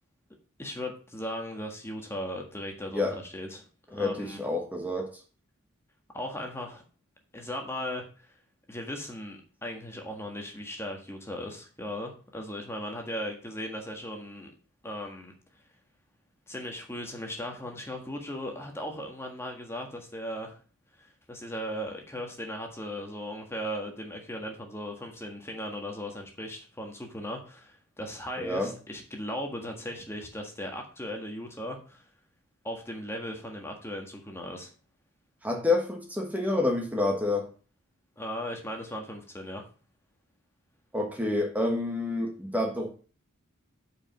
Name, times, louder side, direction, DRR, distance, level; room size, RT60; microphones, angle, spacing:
voice 1, 0.6-4.4 6.1-6.8 7.3-8.3 8.7-14.5 14.8-15.3 16.5-20.6 21.0-32.0 32.6-34.7 38.2-39.6, equal, 10° left, 2 dB, 1.6 m, -37 dB
voice 2, 3.9-5.1 28.4-28.7 35.4-37.5 40.9-42.9, left 2 dB, 5° right, 1 dB, 1.4 m, -28 dB
8.6 x 5.1 x 6.4 m, 0.38 s
head